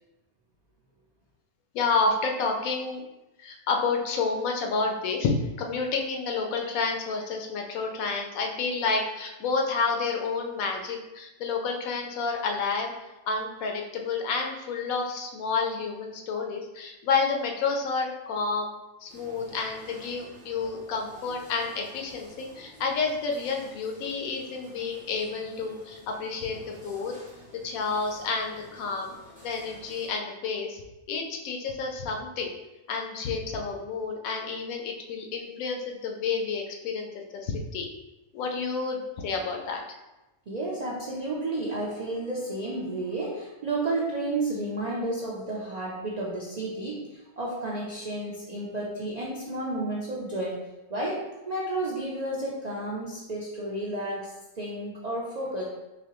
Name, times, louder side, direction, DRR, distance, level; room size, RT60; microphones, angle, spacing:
voice 1, 1.7-3.0 3.4-5.3 5.6-12.9 13.3-18.7 19.0-27.1 27.6-29.1 29.4-30.8 31.1-32.5 32.9-37.9 38.3-39.8, left 4 dB, 75° left, 2 dB, 1.0 m, -30 dB
sound 1, 19.1-30.1, equal, 10° right, 0.5 m, -51 dB
voice 2, 40.5-55.6, right 2 dB, 70° right, -4 dB, 0.4 m, -32 dB
4.1 x 2.8 x 2.9 m, 1.0 s
omnidirectional pair, 1.5 m